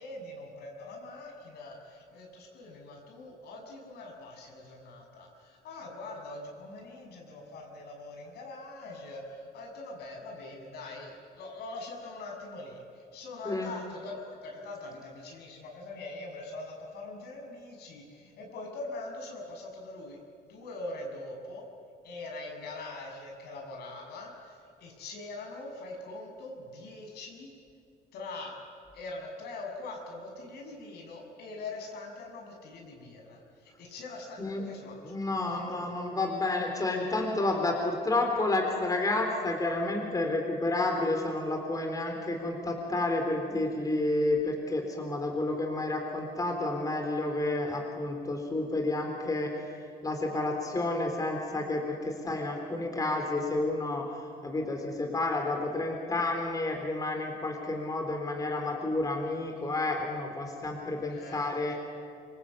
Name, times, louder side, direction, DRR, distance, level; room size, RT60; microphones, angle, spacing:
voice 1, 0.0-20.2 20.5-21.6 22.0-27.5 28.1-28.5 28.9-35.9 37.5-37.8 61.1-61.8, left 2 dB, 70° left, 1 dB, 6.8 m, -43 dB
voice 2, 35.0-49.6 50.0-54.1 54.4-61.8, left 2 dB, 20° left, 2 dB, 4.1 m, -30 dB
26.0 x 23.0 x 8.7 m, 2.3 s
cardioid pair, 110°, 17 cm